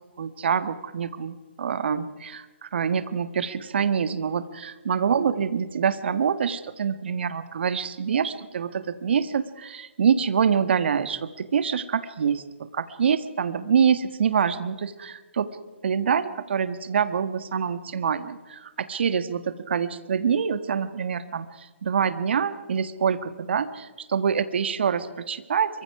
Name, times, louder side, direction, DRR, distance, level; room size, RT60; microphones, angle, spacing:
voice 1, 0.2-15.5 15.8-25.8, right 7 dB, 60° right, 12 dB, 1.5 m, -26 dB
26.0 x 24.0 x 4.8 m, 1.3 s
figure-of-eight pair, 135°, 7 cm